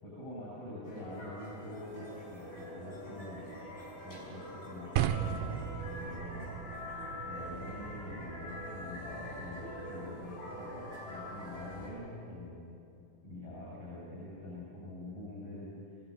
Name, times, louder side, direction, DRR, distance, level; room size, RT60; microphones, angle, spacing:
voice 1, 0.0-3.5 4.0-6.6 7.1-12.7 13.2-16.0, left 1 dB, 40° left, -7 dB, 8.9 m, -45 dB
sound 1, 0.8-11.9, left 1 dB, 85° left, 8.0 m, -45 dB
sound 2, 5.0-11.1, right 11 dB, 80° right, 2.4 m, -39 dB
25.0 x 16.5 x 9.0 m, 2.6 s
omnidirectional pair, 4.1 m